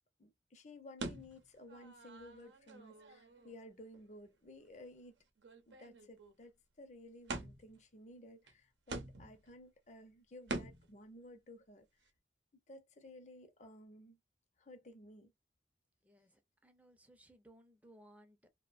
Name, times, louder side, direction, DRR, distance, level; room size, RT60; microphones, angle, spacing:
voice 1, 0.2-5.2 5.7-6.5 6.8-11.9 12.7-14.2 14.6-15.3, left 1 dB, 40° left, 0.6 m, -55 dB
sound 1, 1.0-3.6 3.9-4.0 4.6-4.8 5.1-5.2 5.4-6.3 7.3-7.8 8.5-8.6 8.9-9.5 10.5-10.9, right 3 dB, 80° right, 0.7 m, -45 dB
voice 2, 16.0-18.5, right 1 dB, 10° right, 0.5 m, -62 dB
2.7 x 2.2 x 2.4 m
head